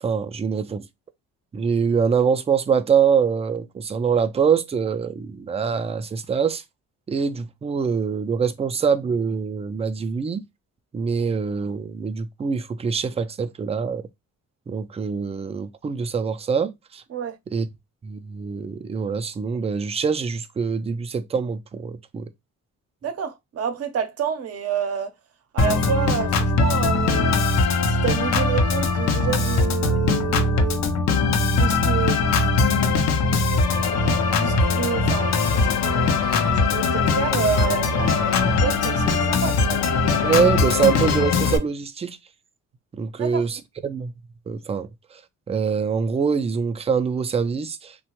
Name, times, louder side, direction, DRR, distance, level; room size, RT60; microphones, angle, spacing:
voice 1, 0.0-0.8 1.5-6.6 7.1-10.4 10.9-14.0 14.7-17.0 17.5-17.7 18.0-22.3 40.2-42.2 42.9-44.1 44.5-45.2 45.5-48.0, right 6 dB, 20° right, 0.4 m, -24 dB
voice 2, 23.0-25.1 25.5-27.4 27.9-30.8 31.5-32.9 34.4-39.8 43.2-43.4, right 7 dB, 55° right, 0.7 m, -29 dB
Organ, 25.6-41.6, left 3 dB, 60° left, 0.6 m, -21 dB
2.8 x 2.2 x 2.9 m
cardioid pair, 90°, 30 cm